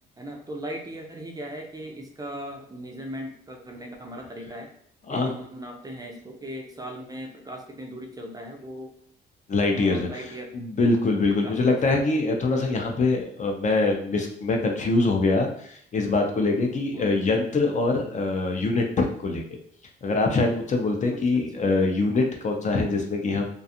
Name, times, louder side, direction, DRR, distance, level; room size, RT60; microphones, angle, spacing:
voice 1, 0.2-4.7 5.1-8.9 9.7-10.5 11.4-11.8 16.9-17.4 21.1-21.7, right 1 dB, 20° right, 2 dB, 0.4 m, -38 dB
voice 2, 9.5-19.4 20.0-23.4, left 3 dB, 40° left, 2 dB, 0.5 m, -24 dB
2.4 x 2.3 x 2.7 m, 0.65 s
cardioid pair, 90°, 20 cm